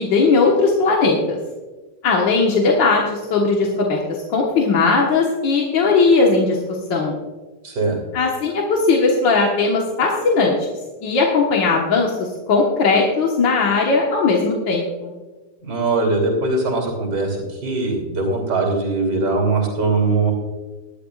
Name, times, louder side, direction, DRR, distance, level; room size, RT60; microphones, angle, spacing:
voice 1, 0.0-1.4 2.0-7.2 8.1-10.7 11.0-15.1, left 4 dB, 80° left, -2 dB, 2.2 m, -18 dB
voice 2, 7.6-8.0 15.6-20.3, right 3 dB, 65° right, 1 dB, 3.5 m, -21 dB
19.0 x 12.0 x 2.5 m, 1.3 s
omnidirectional pair, 2.0 m